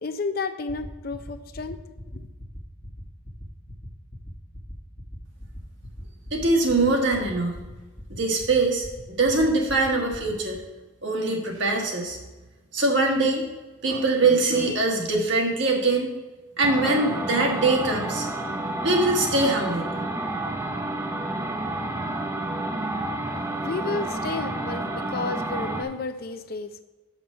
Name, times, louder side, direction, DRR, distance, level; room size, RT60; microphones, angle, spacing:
voice 1, 0.0-1.8 2.1-2.3 23.6-26.8, left 3 dB, 45° left, 9 dB, 0.5 m, -31 dB
sound 1, 0.7-10.6, equal, 25° left, 1.0 m, -40 dB
voice 2, 6.3-7.5 8.1-10.6 11.0-12.2 12.7-13.4 13.8-16.1 16.6-18.3 18.8-19.9, right 2 dB, 60° right, 0 dB, 1.5 m, -23 dB
sound 2, 16.6-25.8, right 2 dB, 15° right, 0.6 m, -30 dB
7.0 x 5.9 x 5.4 m, 1.2 s
head